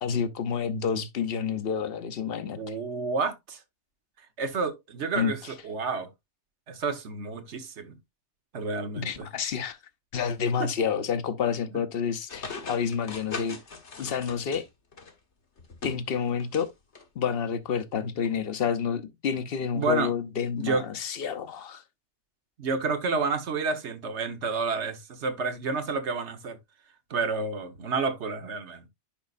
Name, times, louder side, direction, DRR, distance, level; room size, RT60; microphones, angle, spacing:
voice 1, 0.0-2.7 5.2-5.3 9.0-9.8 10.1-13.6 14.0-14.6 15.8-16.7 17.2-21.8, left 7 dB, 60° left, 1.0 m, -29 dB
voice 2, 2.4-3.6 4.4-5.4 5.6-6.1 6.7-8.0 8.5-9.3 10.6-10.7 11.7-11.8 19.7-20.1 20.6-20.8 22.6-26.6 27.1-28.8, right 4 dB, 75° right, 1.4 m, -30 dB
sound 1, 12.3-15.1 15.6-16.7 17.0-17.1 18.2-18.3, left 4 dB, 75° left, 2.0 m, -40 dB
10.5 x 5.3 x 2.4 m
omnidirectional pair, 1.2 m